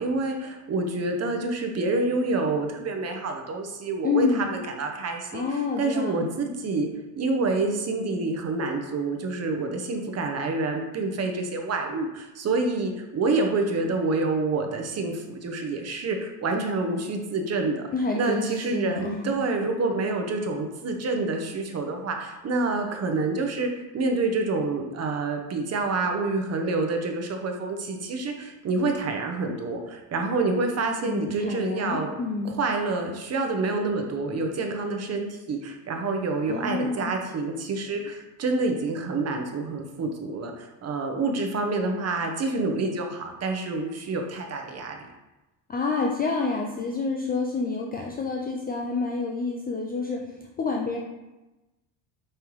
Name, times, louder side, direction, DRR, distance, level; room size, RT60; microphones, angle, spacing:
voice 1, 0.0-6.9 7.2-17.9 18.1-32.1 32.5-45.0, right 3 dB, 30° right, 4 dB, 0.8 m, -27 dB
voice 2, 4.0-4.5 5.3-6.3 17.9-19.3 31.0-32.5 36.5-37.2 45.7-51.0, left 4 dB, 20° left, 0 dB, 0.3 m, -28 dB
5.3 x 3.3 x 3.0 m, 1.0 s
supercardioid pair, 100°, 49 cm